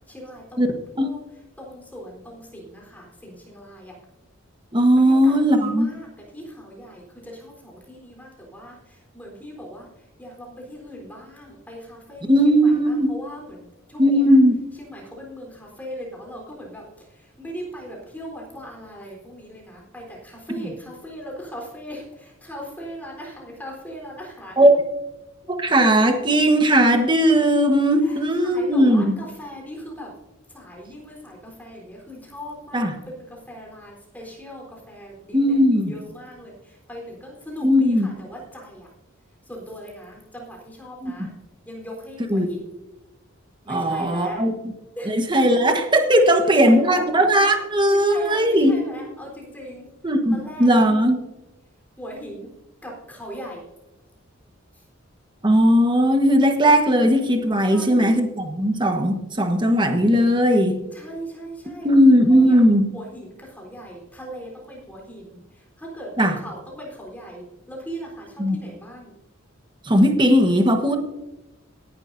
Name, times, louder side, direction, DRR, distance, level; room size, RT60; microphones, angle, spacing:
voice 1, 0.1-1.2 1.6-3.9 5.0-6.1 6.3-9.9 10.2-14.4 14.8-24.7 28.0-30.1 30.5-38.9 39.5-41.3 41.7-42.7 43.6-44.4 45.0-45.2 46.2-47.0 47.9-49.9 50.3-50.8 52.0-52.5 52.8-53.6 57.6-58.3 60.9-61.9 62.3-62.6 62.9-69.1, equal, 10° left, -2 dB, 3.8 m, -39 dB
voice 2, 4.7-5.9 12.3-13.1 14.0-14.6 20.6-20.7 24.6-24.8 25.5-29.2 32.7-32.9 35.3-35.9 37.6-38.1 41.0-41.3 42.3-42.5 43.7-44.5 45.1-48.7 50.0-51.2 55.4-60.8 61.8-62.9 66.2-66.4 68.4-68.6 69.9-71.0, equal, 20° right, 5 dB, 1.3 m, -18 dB
18.0 x 11.0 x 2.7 m, 0.97 s
head